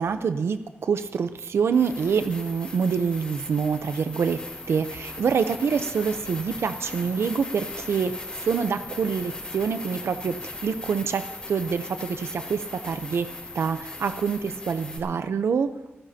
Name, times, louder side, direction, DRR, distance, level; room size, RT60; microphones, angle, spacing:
voice 1, 0.0-4.4 4.7-13.3 13.5-15.7, right 6 dB, 80° right, 10 dB, 0.7 m, -26 dB
sound 1, 1.0-1.1 1.7-15.0, left 2 dB, 25° left, 3.7 m, -38 dB
26.0 x 15.0 x 2.8 m, 0.99 s
wide cardioid pair, 145°, 4 cm